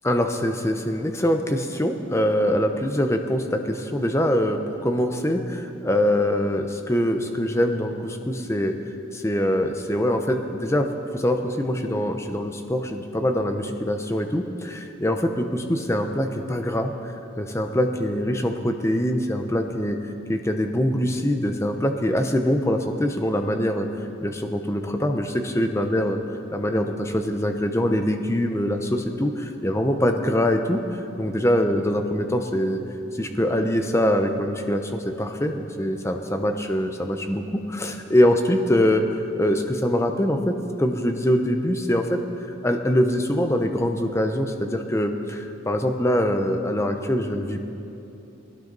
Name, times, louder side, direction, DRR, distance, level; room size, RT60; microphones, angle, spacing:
voice 1, 0.0-8.7 9.1-20.0 20.3-23.9 24.2-26.2 26.5-32.8 33.2-39.0 39.4-42.2 42.6-47.6, equal, 15° left, 5 dB, 0.8 m, -23 dB
20.0 x 17.5 x 4.0 m, 2.8 s
head